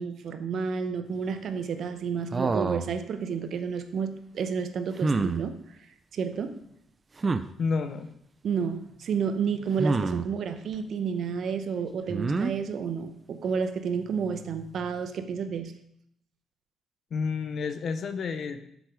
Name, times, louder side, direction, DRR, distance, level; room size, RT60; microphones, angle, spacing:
voice 1, 0.0-5.5 6.1-6.6 8.4-15.7, right 6 dB, 65° right, 9 dB, 0.8 m, -30 dB
sound 1, 2.3-2.9 5.0-5.4 7.2-7.5 9.8-10.3 12.1-12.5, right 3 dB, 30° right, 0.5 m, -26 dB
voice 2, 7.6-8.1 17.1-18.6, left 5 dB, 55° left, 9 dB, 0.8 m, -30 dB
7.9 x 6.5 x 4.7 m, 0.74 s
cardioid pair, 90°, 0 cm